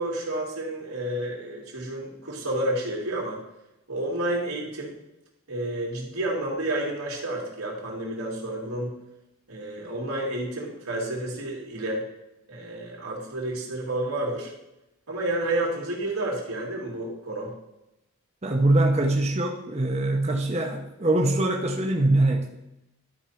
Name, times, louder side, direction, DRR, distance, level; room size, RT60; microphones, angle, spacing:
voice 1, 0.0-3.4 3.9-4.9 5.5-8.9 9.5-12.0 12.5-14.5 15.1-17.5, right 1 dB, 90° right, -2 dB, 2.8 m, -30 dB
voice 2, 18.4-22.5, right 2 dB, 30° right, 2 dB, 0.8 m, -23 dB
11.5 x 4.4 x 5.7 m, 0.88 s
head